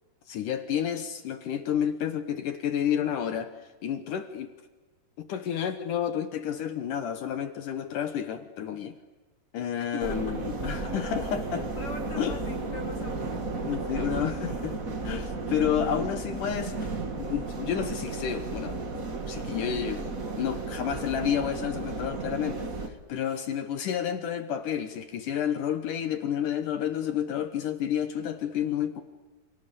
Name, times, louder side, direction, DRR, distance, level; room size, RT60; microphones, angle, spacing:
voice 1, 0.3-3.5 3.8-4.5 5.2-9.0 9.5-11.7 12.2-12.4 13.6-14.8 15.0-18.8 19.3-20.0 20.4-29.0, left 9 dB, 65° left, 9 dB, 2.2 m, -30 dB
voice 2, 9.7-10.4 10.8-10.9 11.5-13.8 15.5-15.7 23.2-23.5, left 3 dB, 50° left, 5 dB, 2.0 m, -42 dB
sound 1, 10.0-22.9, right 3 dB, 50° right, 1.0 m, -34 dB
Piano, 14.0-24.7, right 12 dB, 75° right, 7.5 m, -54 dB
29.5 x 28.0 x 7.0 m, 1.3 s
omnidirectional pair, 4.8 m